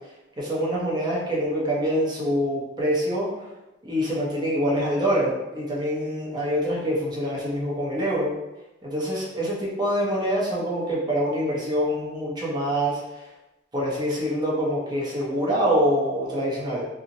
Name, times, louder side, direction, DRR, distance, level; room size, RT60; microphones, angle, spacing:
voice 1, 0.4-3.3 3.8-8.3 8.8-13.0 13.7-16.8, equal, 20° right, -6 dB, 0.7 m, -25 dB
2.7 x 2.1 x 2.6 m, 1.0 s
head